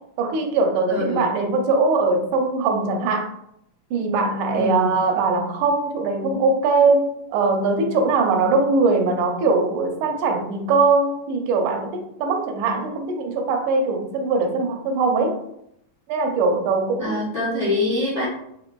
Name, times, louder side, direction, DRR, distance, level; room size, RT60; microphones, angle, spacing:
voice 1, 0.2-3.3 3.9-15.4 16.1-17.2, right 3 dB, 90° right, 4 dB, 2.1 m, -21 dB
voice 2, 0.9-1.2 4.5-5.0 17.0-18.2, left 2 dB, 70° left, -8 dB, 0.5 m, -24 dB
5.2 x 2.6 x 2.2 m, 0.74 s
omnidirectional pair, 3.5 m